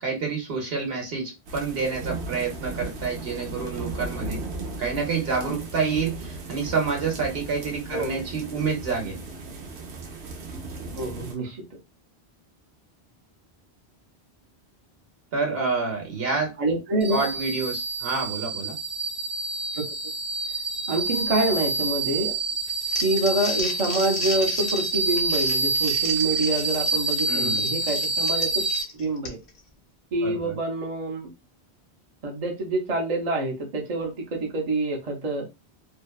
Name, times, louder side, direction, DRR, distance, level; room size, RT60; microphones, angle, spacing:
voice 1, 0.0-4.4 4.8-9.2 15.3-16.5 17.1-18.8 27.3-27.7 30.2-30.6, right 4 dB, 65° right, 1 dB, 1.1 m, -28 dB
sound 1, 1.5-11.3, right 3 dB, 90° right, 0.9 m, -36 dB
voice 2, 11.0-11.6 16.6-17.3 20.9-22.4 23.0-28.5 28.9-29.4 30.1-31.3 32.2-35.5, right 2 dB, 45° right, 1 dB, 0.7 m, -26 dB
sound 2, 17.0-28.8, right 3 dB, 10° right, 0.5 m, -27 dB
Crumpling crinkling, 22.7-29.6, left 3 dB, 65° left, 0.8 m, -36 dB
2.6 x 2.1 x 2.3 m, 0.24 s
omnidirectional pair, 1.1 m